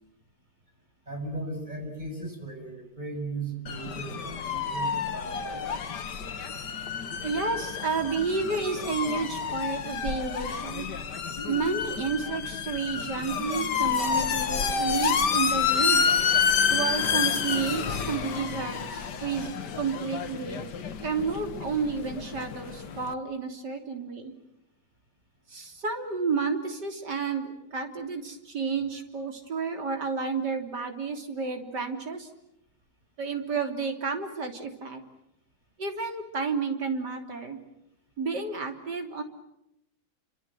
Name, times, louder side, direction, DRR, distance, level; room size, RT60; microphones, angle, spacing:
voice 1, 1.1-5.6, right 2 dB, 25° right, 2 dB, 7.4 m, -37 dB
sound 1, 3.7-23.1, left 6 dB, 80° left, 2.1 m, -29 dB
voice 2, 7.2-10.9 11.4-16.1 16.7-20.6 21.0-24.3 25.5-32.3 33.2-35.0 35.8-37.6 38.2-39.2, right 5 dB, 80° right, 5 dB, 3.8 m, -31 dB
29.0 x 26.0 x 7.6 m, 0.85 s
omnidirectional pair, 1.8 m